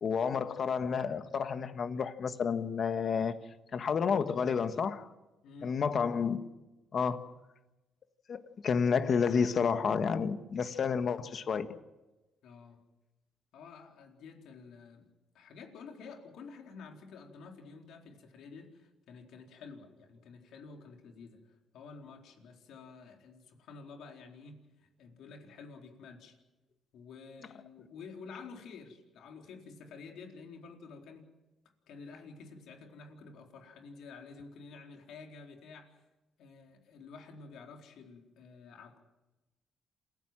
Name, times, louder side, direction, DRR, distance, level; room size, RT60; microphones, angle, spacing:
voice 1, 0.0-3.4 3.7-5.1 5.6-6.5 6.9-7.3 8.3-11.7, left 6 dB, 50° left, 1.6 m, -30 dB
voice 2, 5.4-5.8 12.4-12.8 13.5-15.1 15.3-26.4 26.9-31.3 31.9-36.0 36.4-39.0, left 4 dB, 80° left, 4.1 m, -50 dB
28.0 x 16.0 x 7.6 m
cardioid pair, 90°, 0 cm